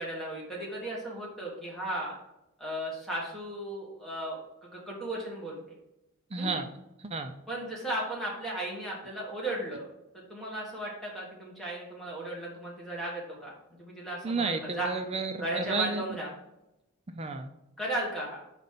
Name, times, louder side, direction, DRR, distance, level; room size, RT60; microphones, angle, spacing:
voice 1, 0.0-2.1 2.6-5.8 6.4-6.6 7.5-9.9 10.1-13.5 13.8-14.9 15.4-16.3 17.8-18.4, right 1 dB, ahead, -5 dB, 1.5 m, -35 dB
voice 2, 6.3-6.7 7.0-7.3 14.2-16.0 17.1-17.5, right 4 dB, 30° right, 7 dB, 0.4 m, -32 dB
5.2 x 4.0 x 5.6 m, 0.88 s
head